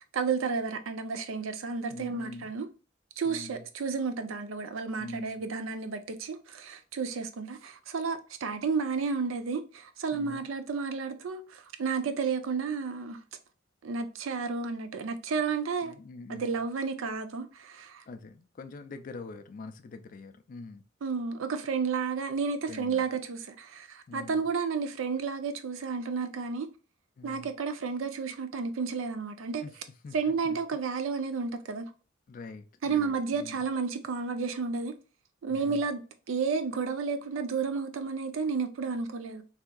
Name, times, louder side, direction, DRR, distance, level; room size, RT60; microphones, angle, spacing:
voice 1, 0.1-2.7 3.2-13.2 13.8-15.9 16.3-18.0 21.0-26.7 27.2-29.6 30.1-31.9 32.8-34.9 35.4-36.0 36.3-39.4, right 5 dB, 85° right, 0.5 m, -32 dB
voice 2, 1.9-2.5 3.2-3.7 5.0-5.4 10.1-10.5 15.8-16.6 18.1-20.8 22.7-23.0 24.1-24.5 27.2-27.5 29.6-30.6 32.3-33.6 35.5-35.8, left 3 dB, 40° left, 0.3 m, -44 dB
3.3 x 2.8 x 2.2 m
head